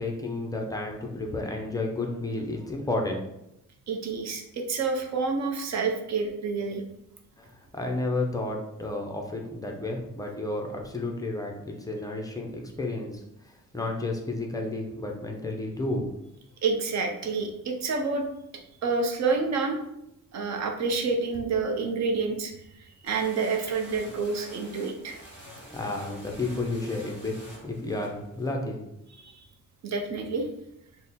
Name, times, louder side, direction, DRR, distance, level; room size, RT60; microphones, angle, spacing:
voice 1, 0.0-3.2 7.4-16.1 25.5-27.4 27.6-28.8, left 2 dB, 10° left, 0 dB, 0.4 m, -32 dB
voice 2, 3.9-6.8 16.6-18.2 18.8-19.8 20.3-22.5 23.0-25.1 29.2-29.4 29.8-30.5, right 4 dB, 55° right, 3 dB, 0.6 m, -28 dB
sound 1, 23.1-28.5, equal, 30° right, 1.3 m, -48 dB
4.1 x 2.0 x 3.5 m, 0.82 s
wide cardioid pair, 175°, 33 cm